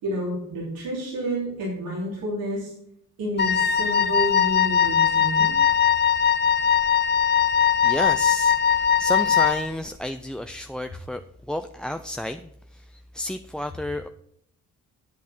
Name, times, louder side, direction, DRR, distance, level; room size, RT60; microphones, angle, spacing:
voice 1, 0.0-2.7 3.2-5.6, equal, 90° right, -6 dB, 3.4 m, -29 dB
Wind instrument woodwind instrument, 3.4-9.7, left 7 dB, 30° left, 0.7 m, -20 dB
voice 2, 7.8-11.2 11.5-14.1, left 1 dB, 5° left, 7 dB, 0.3 m, -31 dB
8.3 x 8.3 x 4.3 m, 0.73 s
cardioid pair, 70°, 34 cm